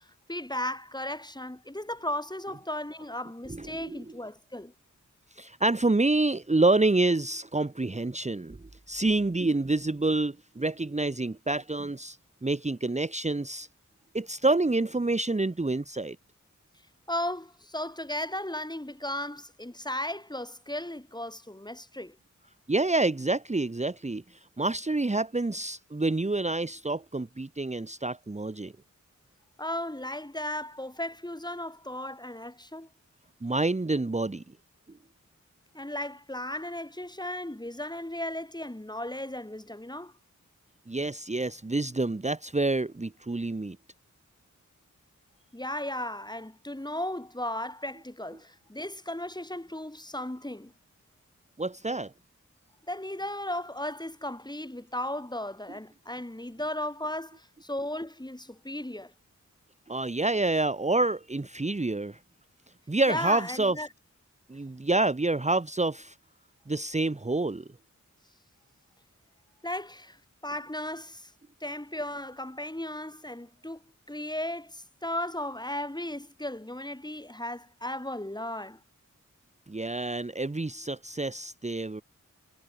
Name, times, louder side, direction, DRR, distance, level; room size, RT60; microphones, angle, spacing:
voice 1, 0.0-4.7 17.1-22.2 29.6-32.9 35.7-40.1 45.5-50.7 52.9-59.1 63.1-63.9 69.6-71.3 71.6-78.8, left 1 dB, 15° left, 3.0 m, -36 dB
voice 2, 3.5-4.0 5.3-8.6 8.9-12.2 12.4-13.7 14.1-16.2 22.7-28.7 33.4-34.4 40.9-43.8 51.6-52.1 59.9-62.2 62.9-63.8 64.5-66.1 66.7-67.7 79.7-82.0, right 2 dB, 20° right, 1.1 m, -27 dB
wide cardioid pair, 60°, 31 cm